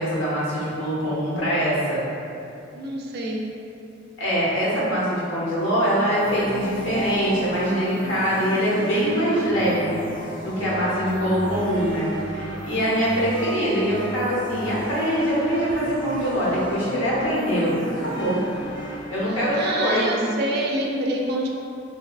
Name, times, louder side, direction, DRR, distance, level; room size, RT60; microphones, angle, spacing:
voice 1, 0.0-2.0 4.2-10.0 10.4-18.4 19.1-20.2, equal, 75° left, -7 dB, 0.8 m, -23 dB
voice 2, 2.7-3.5 19.3-21.5, right 1 dB, 55° right, 0 dB, 0.3 m, -27 dB
sound 1, 6.1-19.7, right 1 dB, 25° left, 0.6 m, -34 dB
2.7 x 2.2 x 2.3 m, 2.6 s
head